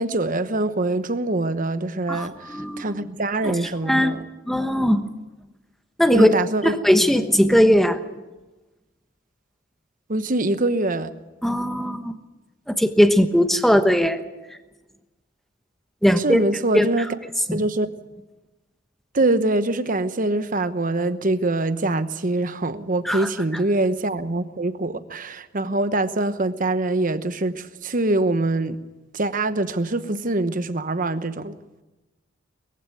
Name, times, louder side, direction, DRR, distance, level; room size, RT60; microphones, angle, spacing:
voice 1, 0.0-4.2 6.1-6.8 10.1-11.1 16.2-17.1 17.5-17.9 19.1-28.8 29.1-31.6, right 2 dB, 40° right, 11 dB, 1.0 m, -24 dB
voice 2, 2.1-2.9 3.4-3.6 3.8-4.1 4.5-5.1 6.0-6.3 6.6-8.0 11.4-12.2 12.7-14.2 14.5-14.6 16.0-16.5 16.7-17.1 17.5-17.6 23.0-23.3, equal, ahead, 8 dB, 1.1 m, -19 dB
21.0 x 15.5 x 9.2 m, 1.1 s
head